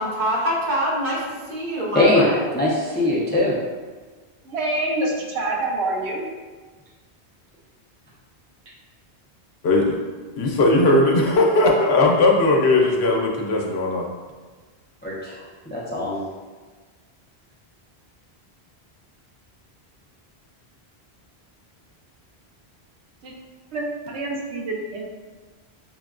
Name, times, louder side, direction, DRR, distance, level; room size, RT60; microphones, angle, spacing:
voice 1, 0.0-2.4, equal, 55° right, -5 dB, 1.1 m, -25 dB
voice 2, 2.5-3.5 15.0-16.2, left 2 dB, 15° left, -5 dB, 0.3 m, -21 dB
voice 3, 4.4-6.2 23.2-23.3 23.7-25.0, right 2 dB, 85° right, -1 dB, 1.0 m, -26 dB
voice 4, 9.6-10.0 10.4-14.1, left 2 dB, 75° left, -1 dB, 0.9 m, -18 dB
5.9 x 2.2 x 2.4 m, 1.4 s
omnidirectional pair, 1.1 m